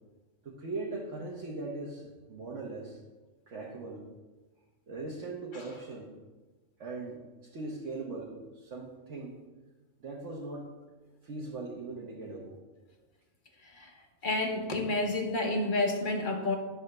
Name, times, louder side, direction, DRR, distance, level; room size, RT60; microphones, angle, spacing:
voice 1, 0.4-3.0 3.5-4.0 4.9-6.1 6.8-9.4 10.0-10.7 11.2-12.6, right 3 dB, 65° right, -3 dB, 1.4 m, -40 dB
voice 2, 14.2-16.6, left 2 dB, 40° left, 2 dB, 1.1 m, -29 dB
9.6 x 3.5 x 6.5 m, 1.2 s
omnidirectional pair, 1.4 m